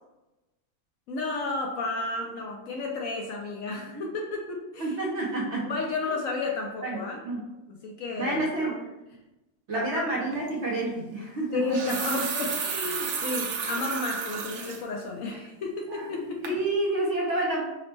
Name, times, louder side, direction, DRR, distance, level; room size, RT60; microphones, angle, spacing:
voice 1, 1.1-4.9 5.6-7.2 7.8-8.8 9.7-10.0 11.5-16.5, left 3 dB, 65° left, 0 dB, 0.9 m, -32 dB
voice 2, 4.8-5.8 6.8-7.5 8.1-8.8 9.7-11.8 16.2-17.7, right 2 dB, 55° right, -3 dB, 0.9 m, -29 dB
sound 1, 10.3-10.5 11.5-14.8 15.3-15.4 15.9-16.2 16.4-16.6, right 6 dB, 85° right, 1.2 m, -32 dB
4.9 x 2.1 x 3.2 m, 1.0 s
omnidirectional pair, 1.7 m